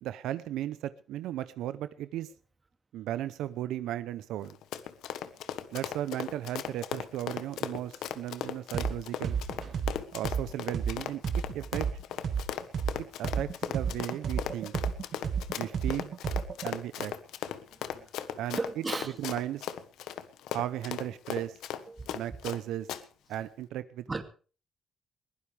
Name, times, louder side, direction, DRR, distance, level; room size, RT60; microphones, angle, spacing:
voice 1, 0.0-2.3 2.9-4.6 5.7-9.4 10.1-11.2 11.5-11.9 13.0-14.7 15.6-16.2 16.6-17.1 18.4-18.6 19.2-19.6 20.5-21.6 22.1-22.9 23.3-24.0, right 12 dB, 85° right, 13 dB, 0.8 m, -35 dB
Run, 4.4-22.6 22.9-23.0, left 10 dB, 85° left, 1.3 m, -37 dB
sound 1, 8.7-8.9 9.2-12.9 13.2-16.7, right 7 dB, 60° right, 2.0 m, -31 dB
voice 2, 17.7-18.1 18.5-19.3 21.9-22.1 24.1-24.2, right 3 dB, 25° right, 7 dB, 2.6 m, -36 dB
21.5 x 16.0 x 3.5 m, 0.38 s
cardioid pair, 90°, 0 cm